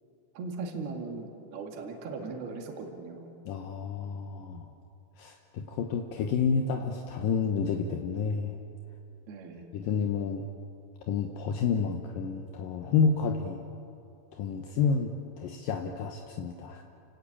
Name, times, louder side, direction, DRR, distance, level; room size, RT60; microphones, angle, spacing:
voice 1, 0.4-3.3 9.3-9.7, right 4 dB, 60° right, 2 dB, 4.1 m, -38 dB
voice 2, 3.5-4.7 5.2-8.6 9.7-10.4 11.1-13.6 14.3-16.8, left 5 dB, 70° left, 3 dB, 2.2 m, -30 dB
30.0 x 19.0 x 8.7 m, 2.6 s
omnidirectional pair, 5.4 m